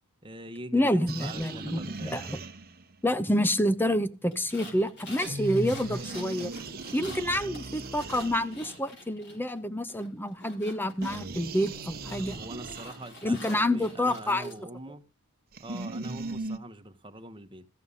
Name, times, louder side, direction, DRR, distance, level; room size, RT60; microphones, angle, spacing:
voice 1, 0.2-2.3 12.3-15.0 15.6-17.7, right 1 dB, 25° right, 1.3 m, -43 dB
voice 2, 0.7-2.4 3.0-6.5 6.9-12.4 13.2-14.5, left 1 dB, 10° left, 0.7 m, -28 dB
sound 1, 1.1-3.0 5.2-8.9 11.0-13.3 15.5-16.6, right 3 dB, 45° right, 1.0 m, -38 dB
sound 2, 4.3-9.6 9.9-14.6, left 2 dB, 55° left, 5.8 m, -48 dB
14.0 x 6.7 x 5.5 m
head